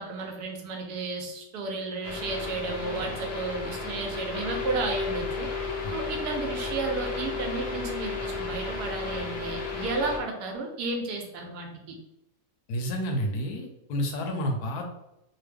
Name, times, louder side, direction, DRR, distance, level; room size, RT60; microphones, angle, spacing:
voice 1, 0.0-5.5 5.9-11.9, right 3 dB, 75° right, 3 dB, 1.1 m, -33 dB
sound 1, 2.0-10.2, left 4 dB, 55° left, 0.7 m, -33 dB
voice 2, 12.7-14.9, equal, 75° left, 3 dB, 1.0 m, -30 dB
3.0 x 2.1 x 3.3 m, 0.85 s
omnidirectional pair, 1.8 m